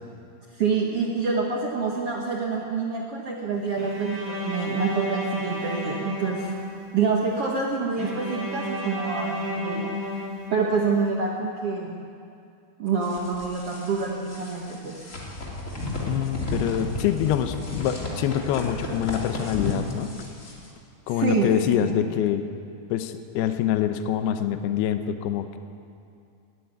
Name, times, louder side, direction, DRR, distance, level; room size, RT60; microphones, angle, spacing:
voice 1, 0.5-6.6 6.9-10.2 10.5-12.1 12.8-15.0 21.1-21.5 21.8-22.0, right 4 dB, 80° right, -1 dB, 1.3 m, -27 dB
Bowed string instrument, 3.8-7.0 8.0-10.9, equal, 45° right, 7.7 m, -32 dB
sound 1, 13.0-20.7, left 2 dB, 20° left, 2.7 m, -33 dB
voice 2, 16.1-20.1 21.1-22.4 22.9-25.6, left 10 dB, 75° left, 9 dB, 2.7 m, -25 dB
19.5 x 14.0 x 9.3 m, 2.5 s
omnidirectional pair, 4.9 m